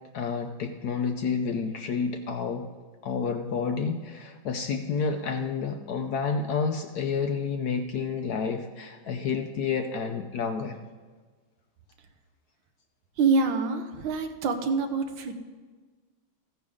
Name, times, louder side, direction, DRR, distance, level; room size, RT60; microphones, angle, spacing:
voice 1, 0.1-2.7 3.0-10.8, left 5 dB, 75° left, 6 dB, 0.9 m, -29 dB
voice 2, 13.2-15.4, right 4 dB, 65° right, 7 dB, 1.5 m, -26 dB
14.5 x 10.0 x 3.7 m, 1.4 s
omnidirectional pair, 2.3 m